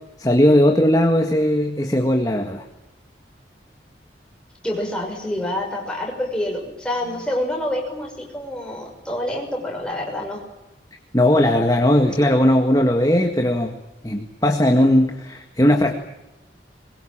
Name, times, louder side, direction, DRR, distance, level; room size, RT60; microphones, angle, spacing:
voice 1, 0.2-2.6 11.1-13.8 14.0-15.9, left 1 dB, 20° left, 3 dB, 1.8 m, -18 dB
voice 2, 4.6-10.4, left 1 dB, 5° left, 0 dB, 6.2 m, -27 dB
22.5 x 21.5 x 8.9 m, 0.97 s
head